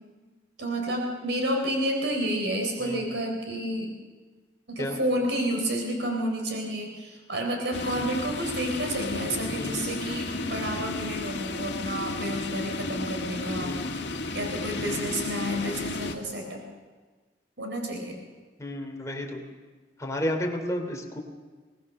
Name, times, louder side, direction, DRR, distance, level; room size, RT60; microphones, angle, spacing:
voice 1, 0.6-3.9 4.7-13.7 14.3-16.6 17.6-18.2, right 1 dB, 85° right, 2 dB, 3.8 m, -30 dB
voice 2, 2.8-3.2 4.8-5.0 9.6-9.9 13.6-14.0 14.8-15.1 18.6-19.4 20.0-21.2, left 1 dB, 20° left, 1 dB, 3.0 m, -32 dB
sound 1, 7.7-16.2, left 2 dB, 75° left, 1.8 m, -33 dB
22.5 x 18.5 x 6.6 m, 1.4 s
head